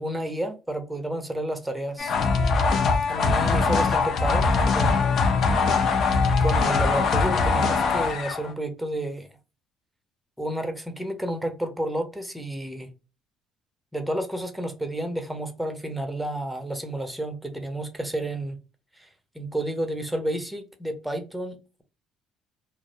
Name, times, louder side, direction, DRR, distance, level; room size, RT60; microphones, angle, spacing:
voice 1, 0.0-2.1 3.1-5.2 6.4-9.3 10.4-12.9 13.9-18.6 19.0-19.1 19.3-21.8, right 1 dB, 5° right, 0.5 m, -31 dB
sound 1, 2.0-8.5, left 4 dB, 55° left, 0.5 m, -22 dB
2.2 x 2.0 x 2.7 m
cardioid pair, 105°, 0 cm